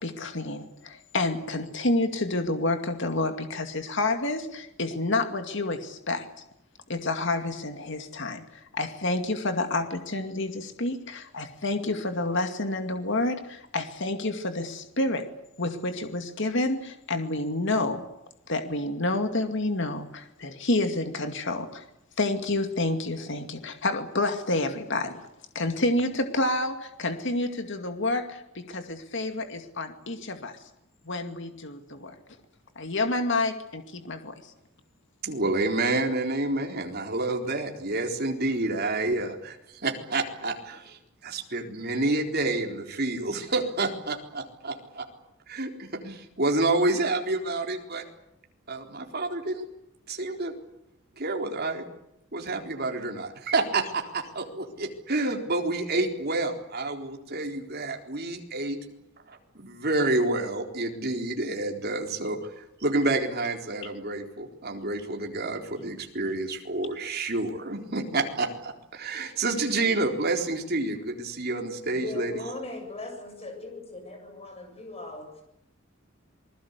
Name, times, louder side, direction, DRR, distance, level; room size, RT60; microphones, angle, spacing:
voice 1, 0.0-6.3 6.9-8.4 8.7-15.2 15.6-18.0 18.5-21.8 22.2-25.2 25.5-30.6 31.0-32.2 32.8-34.5, left 2 dB, 65° left, 7 dB, 2.3 m, -29 dB
voice 2, 35.2-39.6 39.8-45.0 45.5-48.0 48.7-49.6 50.1-50.5 51.2-51.9 52.3-58.8 59.3-72.3, right 2 dB, 50° right, 3 dB, 4.0 m, -29 dB
voice 3, 71.9-75.4, left 3 dB, 30° left, 5 dB, 7.8 m, -39 dB
27.5 x 21.0 x 8.3 m, 0.82 s
head